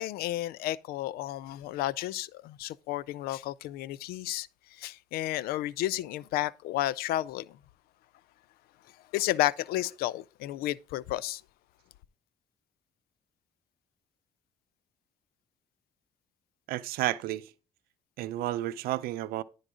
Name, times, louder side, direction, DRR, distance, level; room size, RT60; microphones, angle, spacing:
voice 1, 0.0-4.5 4.8-7.5 9.1-11.4, left 15 dB, 90° left, 0.4 m, -32 dB
voice 2, 16.7-17.5 18.2-19.4, right 15 dB, 85° right, 0.5 m, -31 dB
11.0 x 3.9 x 4.9 m
supercardioid pair, 70°, 15 cm